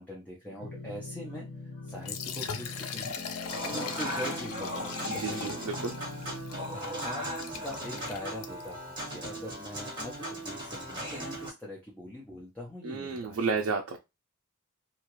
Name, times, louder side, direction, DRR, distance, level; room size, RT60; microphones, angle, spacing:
voice 1, 0.0-1.5 1.8-3.2 3.6-5.6 6.6-13.6, equal, 10° left, -4 dB, 0.7 m, -42 dB
sound 1, 0.6-6.8, left 3 dB, 30° left, 1.2 m, -43 dB
Liquid, 1.9-8.8, left 6 dB, 85° left, 0.5 m, -40 dB
Human voice / Acoustic guitar / Piano, 3.5-11.5, right 1 dB, 20° right, 1.3 m, -38 dB
voice 2, 5.1-5.9 12.8-14.0, right 4 dB, 65° right, 3 dB, 0.4 m, -32 dB
2.8 x 2.4 x 3.0 m, 0.24 s
head